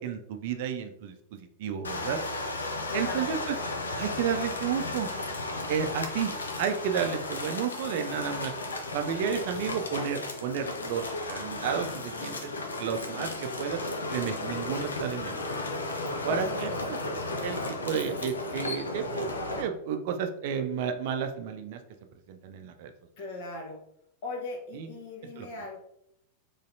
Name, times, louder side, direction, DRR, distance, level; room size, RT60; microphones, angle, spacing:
voice 1, 0.0-2.2 2.9-3.6 4.0-5.1 5.7-6.3 6.6-8.5 8.9-11.0 11.3-12.5 12.8-13.8 14.1-15.4 16.2-17.0 17.4-21.8 22.3-22.9 24.7-24.9 25.3-25.5, right 7 dB, 50° right, 6 dB, 0.4 m, -32 dB
sound 1, 1.8-19.6, left 2 dB, 70° left, 0.6 m, -34 dB
voice 2, 2.9-3.5 16.3-17.0 23.2-23.8 24.2-25.8, left 2 dB, 50° left, 0 dB, 1.0 m, -38 dB
3.9 x 3.2 x 2.6 m, 0.76 s
figure-of-eight pair, 90°, 0 cm